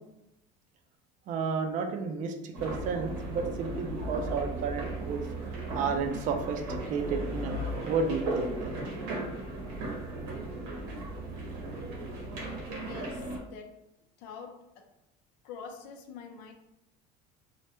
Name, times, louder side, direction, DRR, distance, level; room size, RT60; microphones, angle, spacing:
voice 1, 1.3-5.2 5.7-7.6 7.9-8.7, right 5 dB, 45° right, 6 dB, 0.4 m, -32 dB
sound 1, 2.5-13.4, right 1 dB, 80° right, 0.7 m, -36 dB
voice 2, 12.8-13.9 14.2-14.9 15.4-16.5, left 5 dB, 65° left, 4 dB, 0.5 m, -45 dB
2.1 x 2.1 x 2.9 m, 0.87 s
cardioid pair, 145°, 19 cm